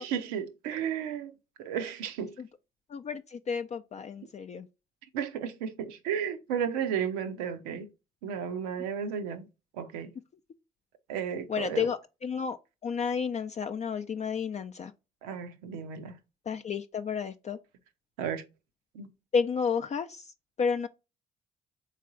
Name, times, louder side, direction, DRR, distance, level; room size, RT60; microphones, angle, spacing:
voice 1, 0.0-1.3 1.6-2.3 5.1-7.9 8.2-9.5 9.7-10.1 11.1-11.9 15.2-16.2 18.2-18.5 18.9-19.1, right 8 dB, 85° right, 0.6 m, -33 dB
voice 2, 2.9-4.7 11.5-12.6 12.8-14.9 16.5-17.6 19.3-20.2 20.6-20.9, left 6 dB, 35° left, 0.4 m, -31 dB
3.7 x 3.2 x 3.7 m
hypercardioid pair, 45°, 19 cm